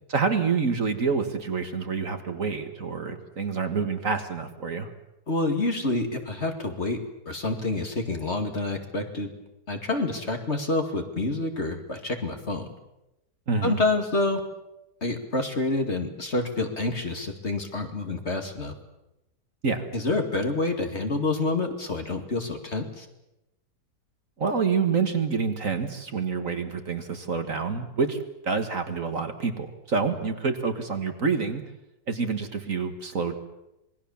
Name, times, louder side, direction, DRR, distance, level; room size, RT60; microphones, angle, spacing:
voice 1, 0.1-4.9 13.5-13.8 19.6-19.9 24.4-28.2 28.4-31.6 32.1-33.4, right 5 dB, 50° right, 7 dB, 2.0 m, -27 dB
voice 2, 5.3-7.0 7.3-9.3 9.7-12.7 13.6-14.4 15.0-18.7 19.9-23.1, left 2 dB, 40° left, 5 dB, 2.5 m, -28 dB
26.5 x 21.0 x 7.2 m, 0.91 s
omnidirectional pair, 1.9 m